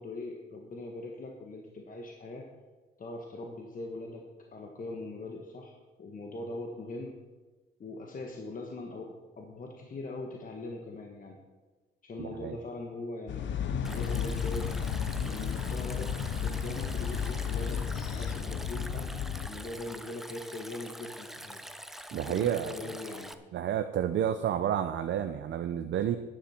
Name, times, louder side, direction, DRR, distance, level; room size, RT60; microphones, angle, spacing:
voice 1, 0.0-2.5 3.0-4.2 4.5-7.2 7.8-11.4 12.0-14.7 15.3-17.8 18.1-19.2 19.4-21.6 22.1-23.4, left 2 dB, 45° left, 1 dB, 1.5 m, -41 dB
voice 2, 12.2-12.6 22.1-22.7 23.5-26.2, right 10 dB, 65° right, 9 dB, 0.6 m, -30 dB
sound 1, 13.3-19.5, left 7 dB, 70° left, 0.9 m, -33 dB
Stream, 13.8-23.3, equal, ahead, 0.7 m, -45 dB
11.5 x 10.5 x 4.4 m, 1.2 s
cardioid pair, 90°, 20 cm